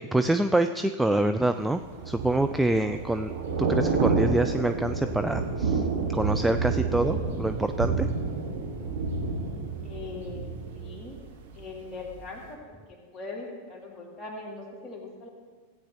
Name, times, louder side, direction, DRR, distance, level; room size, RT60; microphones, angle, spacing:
voice 1, 0.0-3.3 3.6-5.8 6.1-8.1, right 1 dB, 5° right, 8 dB, 0.3 m, -26 dB
Thunder / Rain, 1.7-11.7 12.0-12.3, right 4 dB, 60° right, 1.6 m, -29 dB
voice 2, 9.8-10.4 10.7-11.2 11.5-15.3, left 3 dB, 20° left, -2 dB, 2.5 m, -41 dB
15.5 x 8.7 x 2.9 m, 1.5 s
figure-of-eight pair, 90°, 0 cm